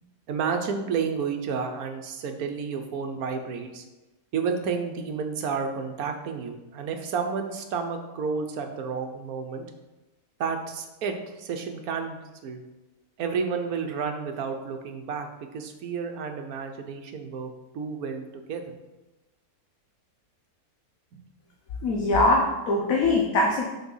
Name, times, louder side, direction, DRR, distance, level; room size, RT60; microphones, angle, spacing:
voice 1, 0.3-3.8 4.3-9.7 10.4-12.6 13.2-18.8 21.1-21.2 22.0-22.1, right 5 dB, 70° right, 5 dB, 1.3 m, -31 dB
voice 2, 21.8-23.6, left 2 dB, 65° left, 0 dB, 1.2 m, -22 dB
6.1 x 4.3 x 5.5 m, 1.1 s
omnidirectional pair, 1.6 m